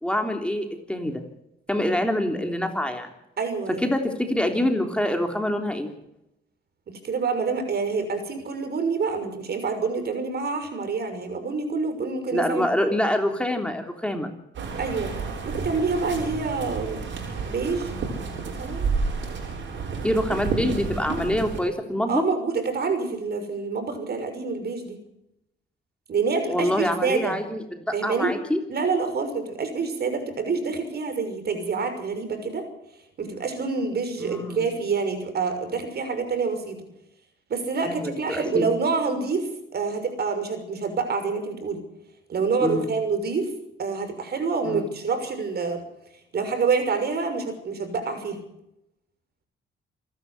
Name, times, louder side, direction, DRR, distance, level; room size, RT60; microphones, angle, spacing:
voice 1, 0.0-1.2 1.7-3.1 3.7-5.9 12.3-14.3 20.0-22.2 26.5-28.6 34.2-34.6 37.9-38.7 42.6-42.9 44.6-44.9, left 1 dB, 5° left, 4 dB, 3.3 m, -25 dB
voice 2, 3.4-3.8 6.9-12.7 14.8-15.1 15.5-17.0 17.4-17.9 18.4-18.8 22.1-25.0 26.1-27.4 27.9-28.4 28.7-32.7 33.2-36.9 37.5-41.8 42.3-43.5 43.8-45.8 46.3-48.4, right 4 dB, 55° right, 8 dB, 6.0 m, -27 dB
sound 1, 14.5-21.6, right 4 dB, 70° right, 7.5 m, -30 dB
27.0 x 12.0 x 8.2 m, 0.83 s
cardioid pair, 90°, 20 cm